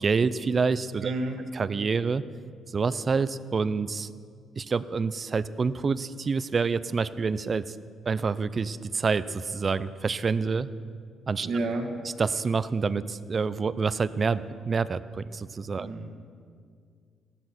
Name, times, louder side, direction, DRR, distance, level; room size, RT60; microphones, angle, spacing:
voice 1, 0.0-1.1 1.5-2.2 2.7-4.1 4.6-7.8 8.1-10.7 11.3-11.5 12.2-15.9, right 5 dB, 40° right, 15 dB, 0.5 m, -27 dB
voice 2, 1.0-1.4 11.4-11.9 15.8-16.1, right 2 dB, 65° right, 2 dB, 1.9 m, -30 dB
15.5 x 12.5 x 5.9 m, 2.2 s
cardioid pair, 90°, 0 cm